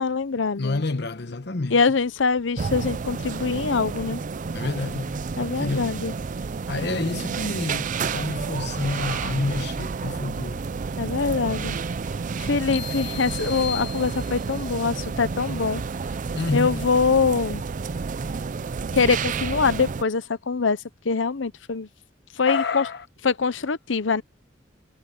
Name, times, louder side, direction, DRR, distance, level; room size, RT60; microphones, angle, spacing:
voice 1, 0.0-0.8 1.7-4.2 5.4-6.1 11.0-11.8 12.4-15.8 16.5-17.6 18.9-20.8 21.0-21.9 22.4-22.8 23.2-24.2, left 5 dB, 90° left, 0.8 m, -23 dB
voice 2, 0.6-1.8 4.5-5.2 5.6-6.0 6.7-10.6 16.3-16.8 22.4-23.1, left 3 dB, 65° left, 1.1 m, -28 dB
sound 1, 2.6-20.0, right 5 dB, 45° right, 0.4 m, -30 dB
sound 2, 12.7-14.7, left 9 dB, 35° left, 1.4 m, -37 dB
head